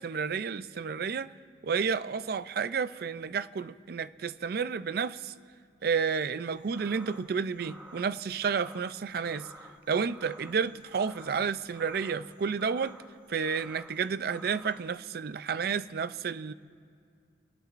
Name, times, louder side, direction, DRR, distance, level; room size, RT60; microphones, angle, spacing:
voice 1, 0.0-1.3 1.6-5.3 5.8-9.5 9.9-13.0 13.3-16.5, right 6 dB, 55° right, 0.4 m, -31 dB
sound 1, 6.4-14.9, right 1 dB, 10° right, 1.2 m, -52 dB
27.0 x 17.5 x 2.5 m
head